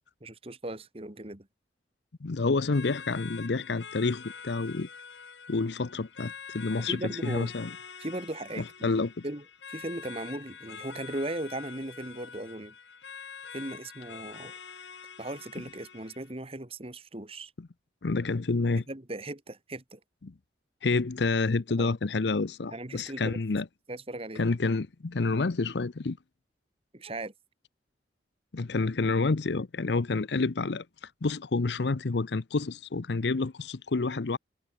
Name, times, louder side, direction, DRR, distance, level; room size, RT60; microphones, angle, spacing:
voice 1, 0.2-1.5 6.9-7.5 8.0-8.9 9.2-12.7 13.5-14.5 15.2-17.5 18.9-20.0 21.8-21.9 22.7-23.4 23.9-24.4 26.9-27.3, right 1 dB, 30° right, 1.9 m, -37 dB
voice 2, 2.2-4.9 5.5-7.7 8.6-9.2 18.0-18.8 20.2-20.3 20.8-23.7 24.4-26.2 28.5-30.8 31.2-34.4, left 3 dB, 70° left, 0.7 m, -28 dB
sound 1, 2.7-16.3, left 6 dB, 85° left, 5.6 m, -46 dB
head